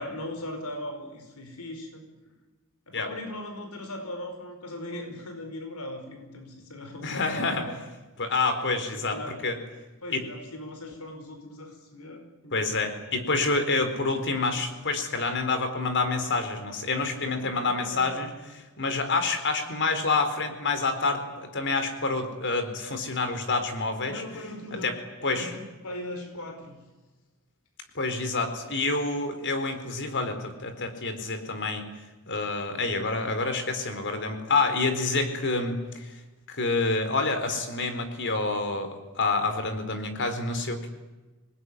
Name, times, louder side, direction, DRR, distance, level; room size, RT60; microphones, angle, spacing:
voice 1, 0.0-2.0 2.9-7.7 8.9-9.4 10.0-12.8 17.2-18.2 24.0-24.9 25.2-26.8, left 1 dB, 90° left, 5 dB, 5.2 m, -39 dB
voice 2, 7.0-7.6 8.2-9.6 10.1-10.2 12.5-24.2 24.7-25.5 27.9-31.8 32.3-36.2 36.5-40.9, left 3 dB, 55° left, 8 dB, 4.4 m, -28 dB
27.0 x 20.5 x 9.9 m, 1.2 s
head